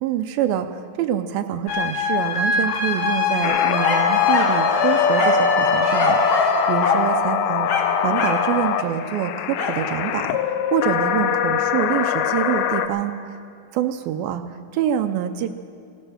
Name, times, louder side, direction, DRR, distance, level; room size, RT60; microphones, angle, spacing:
voice 1, 0.0-7.7 8.0-13.4 13.7-15.5, right 10 dB, 80° right, 7 dB, 2.3 m, -26 dB
sound 1, 1.7-7.2, left 4 dB, 75° left, 4.0 m, -23 dB
sound 2, 3.4-12.9, left 9 dB, 90° left, 2.6 m, -23 dB
sound 3, 3.8-4.6 5.2-5.5 6.0-6.6 6.8-7.1 7.7-8.5 9.6-9.8, left 4 dB, 50° left, 1.8 m, -23 dB
17.0 x 13.0 x 6.3 m, 2.4 s
omnidirectional pair, 4.2 m